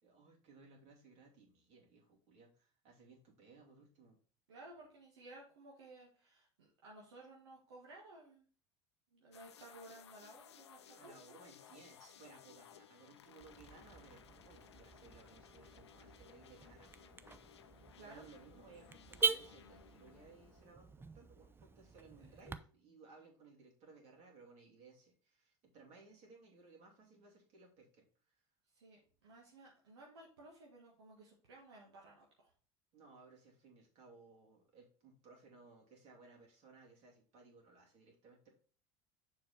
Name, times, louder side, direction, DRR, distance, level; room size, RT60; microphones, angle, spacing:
voice 1, 0.0-4.2 10.9-17.1 17.7-28.1 32.9-38.5, right 3 dB, 55° right, 0 dB, 2.8 m, -61 dB
voice 2, 4.5-8.5 9.1-11.1 18.0-18.2 28.7-32.5, right 2 dB, 80° right, -3 dB, 1.5 m, -57 dB
sound 1, 9.3-20.7, left 9 dB, 85° left, 0.5 m, -60 dB
Car / Alarm, 13.4-22.6, right 5 dB, 15° right, 0.5 m, -43 dB
6.9 x 4.8 x 4.3 m, 0.41 s
hypercardioid pair, 70°, 14 cm